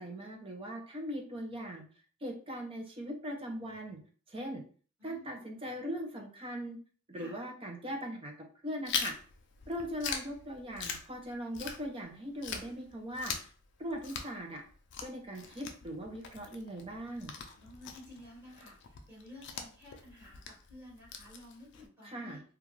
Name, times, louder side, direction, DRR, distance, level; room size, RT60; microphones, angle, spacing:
voice 1, 0.0-1.8 2.2-4.0 4.3-4.6 5.0-6.8 7.1-9.1 9.7-13.5 13.8-14.6 15.0-17.3 22.0-22.4, equal, 25° right, 2 dB, 0.5 m, -40 dB
voice 2, 5.0-5.4 7.1-7.4 17.6-22.4, left 1 dB, 10° right, -8 dB, 1.3 m, -53 dB
Chewing mastication, 8.9-12.1 12.4-21.9, left 6 dB, 55° left, 0.4 m, -42 dB
2.4 x 2.3 x 3.1 m, 0.41 s
head